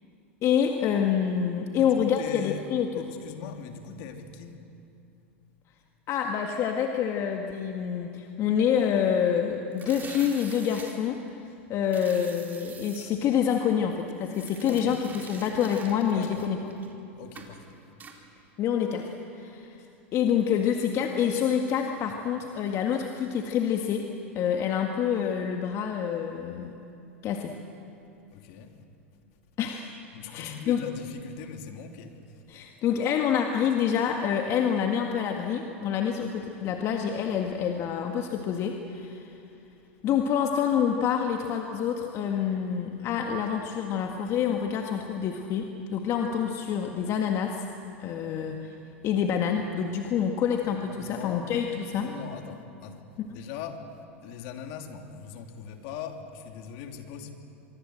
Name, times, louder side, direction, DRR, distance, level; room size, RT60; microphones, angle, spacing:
voice 1, 0.4-3.1 6.1-11.4 11.7-16.7 18.6-19.8 20.1-24.1 24.4-26.7 27.2-27.5 29.6-29.9 30.2-30.8 32.5-39.3 40.0-47.6 48.0-48.7 49.0-52.1 53.2-53.4, left 8 dB, 45° left, 3 dB, 1.9 m, -27 dB
voice 2, 1.8-2.7 2.9-4.6 14.7-15.0 16.1-16.5 17.2-17.7 28.3-28.7 30.1-32.1 50.7-51.5 51.9-53.0 53.3-53.8 54.2-57.3, left 7 dB, 60° left, 4 dB, 2.9 m, -40 dB
sound 1, 9.7-10.9 11.9-13.1 14.3-16.9 17.4-17.6 18.0-18.2, right 5 dB, 25° right, 4.2 m, -46 dB
25.5 x 23.0 x 7.9 m, 2.8 s
hypercardioid pair, 100°, 7 cm